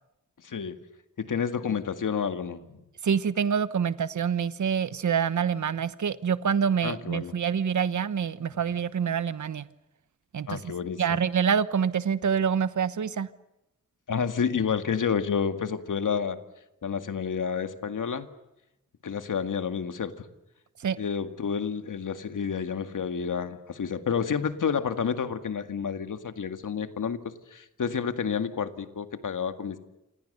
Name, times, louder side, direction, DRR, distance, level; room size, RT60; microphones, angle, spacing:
voice 1, 0.4-0.8 1.2-2.8 6.8-7.3 10.5-11.2 14.1-16.4 16.8-18.3 19.0-20.3 21.0-27.2 27.5-29.8, left 6 dB, 80° left, 8 dB, 2.1 m, -30 dB
voice 2, 3.0-9.6 10.3-10.6 11.0-13.3 20.8-21.0, right 7 dB, 65° right, 15 dB, 1.1 m, -26 dB
28.5 x 27.5 x 6.8 m, 0.91 s
wide cardioid pair, 150°, 31 cm